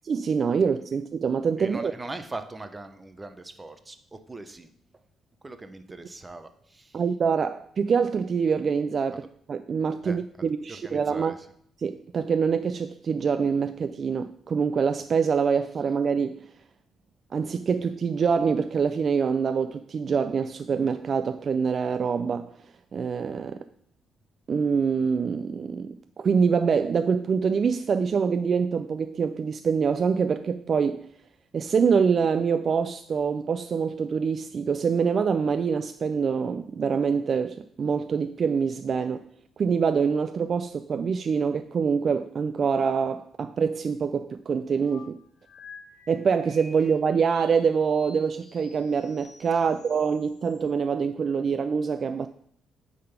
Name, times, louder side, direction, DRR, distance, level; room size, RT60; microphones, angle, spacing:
voice 1, 0.0-1.9 6.9-9.2 9.5-11.3 11.8-16.4 17.3-22.5 22.9-23.6 24.5-31.1 31.5-39.2 39.6-45.2 46.1-52.3, right 6 dB, 50° right, 0.3 m, -25 dB
voice 2, 1.6-4.7 5.4-7.0 10.0-10.2 10.7-11.5 49.6-49.7, right 2 dB, 20° right, 0.8 m, -40 dB
sound 1, 44.8-50.6, left 4 dB, 80° left, 1.3 m, -52 dB
8.5 x 3.9 x 5.8 m
cardioid pair, 90°, 0 cm